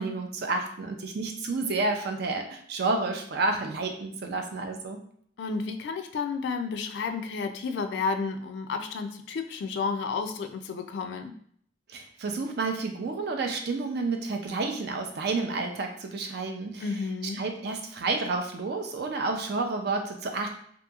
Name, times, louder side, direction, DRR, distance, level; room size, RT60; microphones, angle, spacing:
voice 1, 0.0-5.0 11.9-16.8 17.3-20.5, right 3 dB, 60° right, 4 dB, 0.4 m, -30 dB
voice 2, 5.4-11.3 16.8-17.4, left 4 dB, 65° left, 7 dB, 0.3 m, -31 dB
2.8 x 2.6 x 2.3 m, 0.62 s
head